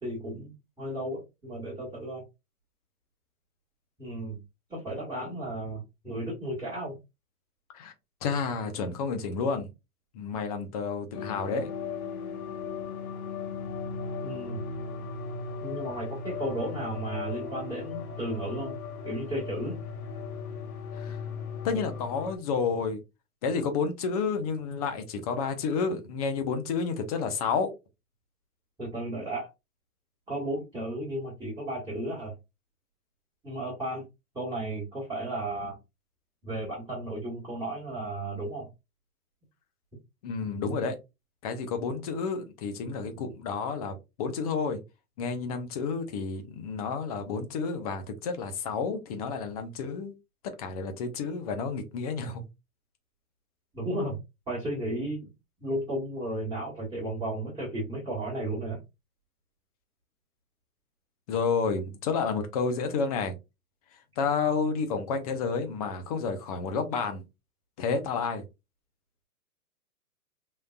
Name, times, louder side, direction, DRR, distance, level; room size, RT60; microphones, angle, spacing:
voice 1, 0.0-2.2 4.0-4.4 4.7-7.0 14.2-14.6 15.6-18.8 19.0-19.8 28.8-29.5 30.3-32.4 33.4-34.0 34.3-35.8 36.4-38.7 53.7-54.2 54.5-55.2 55.6-58.8, right 1 dB, 10° right, 1.4 m, -34 dB
voice 2, 8.2-9.7 10.1-11.7 20.9-21.2 21.6-23.0 23.4-27.7 40.2-40.9 41.4-44.8 45.2-50.1 50.6-52.5 61.3-63.4 64.2-67.2 67.8-68.4, left 5 dB, 25° left, 0.6 m, -30 dB
sound 1, 11.1-22.4, left 5 dB, 65° left, 1.2 m, -37 dB
3.7 x 2.6 x 2.3 m
hypercardioid pair, 130°, 46 cm